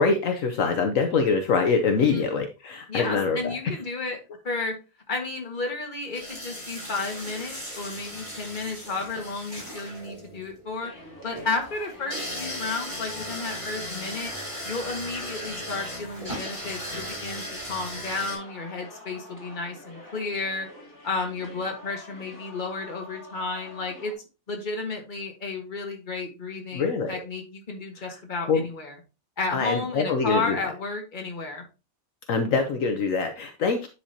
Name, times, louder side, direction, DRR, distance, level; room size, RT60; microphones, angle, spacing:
voice 1, 0.0-3.6 26.7-27.1 28.5-28.6 29.5-30.6 32.3-33.9, left 4 dB, 70° left, 5 dB, 1.2 m, -24 dB
voice 2, 2.9-4.7 5.1-10.9 11.2-14.3 14.6-20.7 21.0-24.1 24.5-28.9 29.4-31.6, left 3 dB, 35° left, 2 dB, 1.7 m, -32 dB
sound 1, 6.1-18.4, equal, 20° right, 4.9 m, -37 dB
sound 2, 10.8-24.1, left 1 dB, 15° left, 2.3 m, -46 dB
10.0 x 4.9 x 2.8 m, 0.29 s
omnidirectional pair, 1.5 m